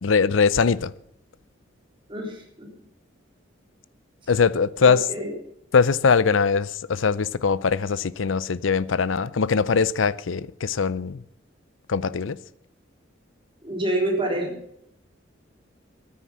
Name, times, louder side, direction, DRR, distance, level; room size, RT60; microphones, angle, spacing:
voice 1, 0.0-0.9 4.3-5.1 5.7-11.2 11.9-12.4, left 5 dB, 80° left, 0.6 m, -21 dB
voice 2, 2.1-2.7 4.8-5.3 13.6-14.6, right 1 dB, 25° right, 3.7 m, -27 dB
14.0 x 9.6 x 7.2 m
head